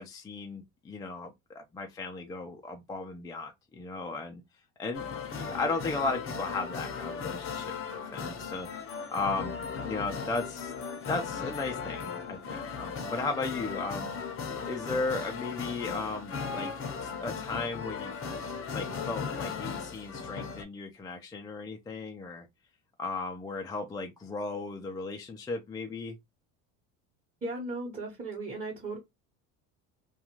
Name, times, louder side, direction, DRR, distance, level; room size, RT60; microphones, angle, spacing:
voice 1, 0.0-4.4 4.8-9.5 9.8-10.7 11.1-14.1 14.5-16.7 17.0-22.5 23.0-26.1, left 3 dB, 10° left, 0.3 m, -36 dB
sound 1, 4.9-20.6, left 5 dB, 40° left, 0.7 m, -37 dB
voice 2, 27.4-29.0, right 2 dB, 25° right, 1.1 m, -36 dB
2.4 x 2.2 x 2.9 m
supercardioid pair, 105°, 34 cm